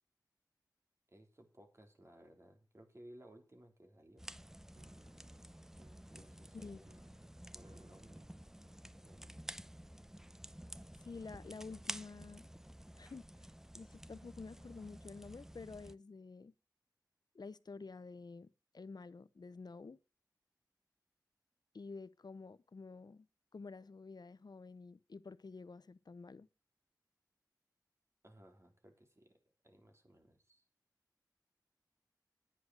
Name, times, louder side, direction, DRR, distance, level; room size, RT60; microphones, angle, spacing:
voice 1, 1.1-4.3 6.1-8.3 9.1-9.4 28.2-29.4 29.6-30.6, right 1 dB, 40° right, 3.4 m, -60 dB
sound 1, 4.2-16.0, equal, 5° right, 0.6 m, -51 dB
Piano, 4.8-11.5, right 2 dB, 80° right, 3.3 m, -68 dB
voice 2, 11.0-12.5 13.0-13.2 13.7-16.5 17.3-18.5 18.7-20.0 21.7-23.3 23.5-26.5, left 4 dB, 70° left, 0.7 m, -50 dB
10.5 x 9.6 x 6.2 m
wide cardioid pair, 45°, 7 cm